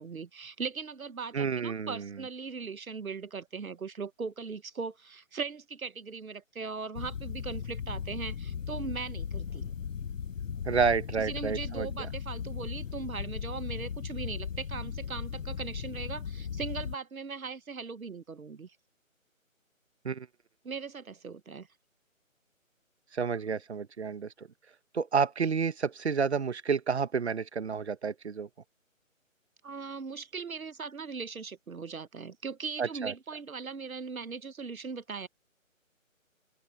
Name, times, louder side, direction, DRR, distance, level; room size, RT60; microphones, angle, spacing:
voice 1, 0.0-9.7 11.2-18.8 20.6-21.7 29.6-35.3, right 5 dB, 85° right, 1.2 m, -39 dB
voice 2, 1.3-2.2 10.6-11.9 20.0-20.3 23.1-24.5 24.9-28.5 32.8-33.1, right 6 dB, 55° right, 1.6 m, -30 dB
sound 1, 7.0-16.9, left 7 dB, 70° left, 0.8 m, -37 dB
open air
figure-of-eight pair, 160°, 41 cm